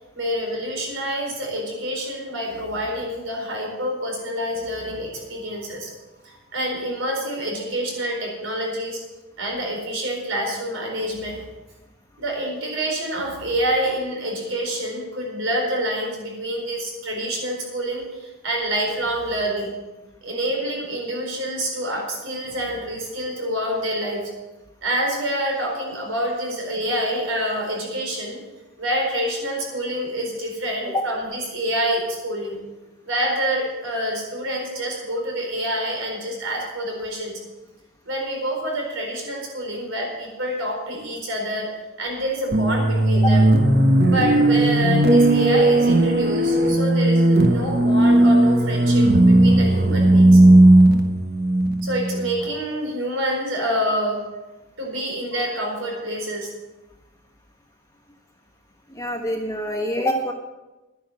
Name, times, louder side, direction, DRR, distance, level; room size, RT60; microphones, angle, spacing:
voice 1, 0.1-5.9 6.2-9.0 9.4-11.5 12.2-19.7 20.2-24.3 24.8-28.4 28.8-32.6 33.0-37.4 38.0-41.7 42.0-43.4 44.0-50.4 51.8-54.2 54.8-56.5, right 1 dB, 75° right, 0 dB, 4.4 m, -27 dB
sound 1, 42.5-52.4, right 1 dB, 50° right, 1.3 m, -16 dB
voice 2, 58.9-60.3, equal, 15° left, 1 dB, 1.4 m, -25 dB
11.0 x 10.5 x 6.6 m, 1.1 s
head